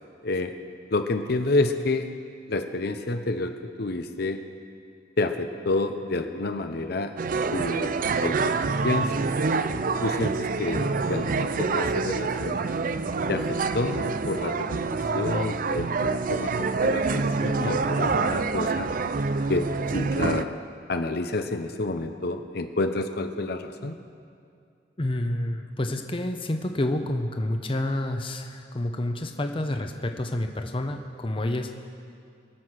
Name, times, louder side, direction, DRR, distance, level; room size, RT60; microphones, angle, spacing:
voice 1, 0.2-0.5 0.9-2.1 2.5-4.4 5.2-7.2 7.5-9.3 10.0-12.6 13.3-18.9 19.5-20.6 20.9-24.0, left 2 dB, 60° left, 7 dB, 0.8 m, -29 dB
sound 1, 7.2-20.4, right 4 dB, 50° right, 0.5 m, -26 dB
voice 2, 25.0-31.7, left 1 dB, 30° left, 5 dB, 0.8 m, -29 dB
23.0 x 7.8 x 6.4 m, 2.3 s
head